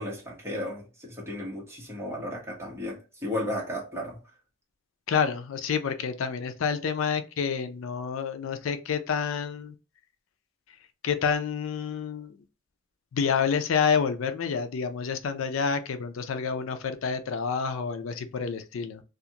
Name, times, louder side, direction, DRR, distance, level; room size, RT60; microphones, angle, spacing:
voice 1, 0.0-4.2, left 1 dB, 15° right, 1.1 m, -34 dB
voice 2, 5.1-9.7 11.0-12.4 13.1-19.0, left 6 dB, 75° left, 0.4 m, -28 dB
2.4 x 2.4 x 2.8 m
head